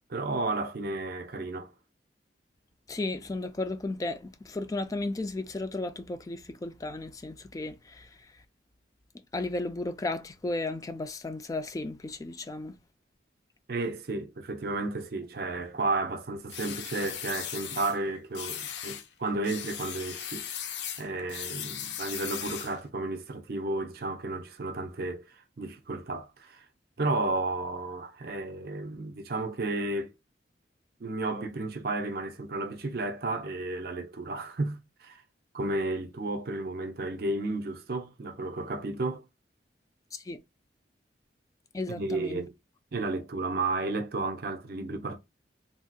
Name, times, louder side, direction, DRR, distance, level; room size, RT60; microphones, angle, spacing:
voice 1, 0.1-1.7 13.7-26.6 27.0-30.1 31.0-35.2 35.5-39.2 41.9-42.5 42.9-45.2, right 2 dB, 55° right, 0.6 m, -33 dB
voice 2, 2.9-8.1 9.3-12.7 40.1-40.4 41.7-42.4, left 2 dB, 20° left, 0.3 m, -34 dB
sound 1, 16.5-18.0 18.3-19.1 19.4-22.8, left 9 dB, 75° left, 0.5 m, -38 dB
3.2 x 2.7 x 2.2 m
head